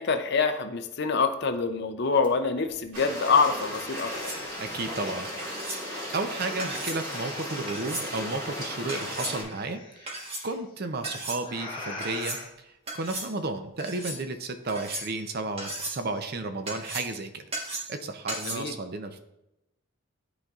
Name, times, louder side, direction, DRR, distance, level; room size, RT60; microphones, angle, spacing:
voice 1, 0.0-4.3 18.5-18.7, left 5 dB, 50° left, 8 dB, 0.5 m, -26 dB
sound 1, 2.2-2.3 2.7-5.1 5.8-8.2 9.0-10.6 11.4-12.4, left 3 dB, 25° left, 1.1 m, -44 dB
sound 2, 2.9-9.4, equal, 85° right, 2.4 m, -36 dB
sound 3, 4.0-4.5 5.4-5.8 6.6-7.0 7.7-8.1 8.9-9.3 10.1-10.4 11.0-11.4 12.0-12.4 12.9-13.3 13.8-14.2 14.7-15.2 15.6-16.0 16.7-17.2 17.5-18.0 18.3-18.5, right 2 dB, 30° right, 1.2 m, -36 dB
voice 2, 4.6-5.3 5.6-12.7 12.9-17.4 17.9-19.2, right 3 dB, 45° right, 8 dB, 0.6 m, -33 dB
11.5 x 4.0 x 2.4 m, 0.89 s
head